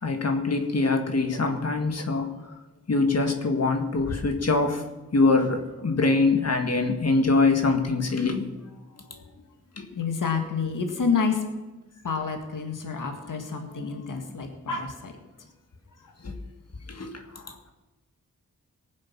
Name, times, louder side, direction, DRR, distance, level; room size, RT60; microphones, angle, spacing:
voice 1, 0.0-2.3 2.9-4.8 5.1-8.5 9.8-9.9 16.2-16.3 16.9-17.1, left 3 dB, 55° left, 5 dB, 1.9 m, -23 dB
voice 2, 9.9-11.4 12.0-15.1, left 5 dB, 80° left, 4 dB, 2.0 m, -28 dB
19.0 x 7.5 x 6.1 m, 1.1 s
wide cardioid pair, 90°, 31 cm